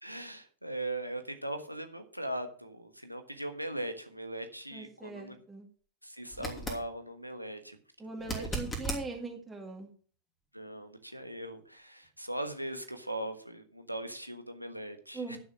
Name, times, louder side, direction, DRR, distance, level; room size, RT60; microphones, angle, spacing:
voice 1, 0.0-5.4 6.0-7.8 8.0-8.5 10.5-15.4, right 1 dB, 90° right, 7 dB, 1.4 m, -40 dB
voice 2, 4.7-5.7 8.0-9.9 15.1-15.4, right 3 dB, 10° right, -1 dB, 2.1 m, -41 dB
sound 1, 6.3-6.8 8.2-9.0 12.0-12.1, right 1 dB, 15° left, 3.0 m, -36 dB
11.0 x 6.3 x 6.3 m, 0.44 s
figure-of-eight pair, 90°, 0 cm